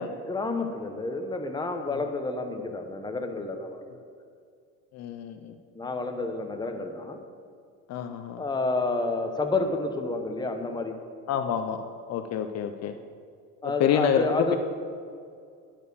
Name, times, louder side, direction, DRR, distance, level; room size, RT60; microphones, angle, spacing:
voice 1, 0.3-3.8 5.7-7.2 8.4-10.9 13.6-14.6, left 3 dB, 15° left, 5 dB, 0.9 m, -29 dB
voice 2, 4.9-5.5 7.9-8.4 11.3-11.8 12.1-12.9 13.6-14.5, left 8 dB, 55° left, 7 dB, 0.6 m, -27 dB
10.5 x 4.5 x 6.8 m, 2.3 s
supercardioid pair, 105°, 31 cm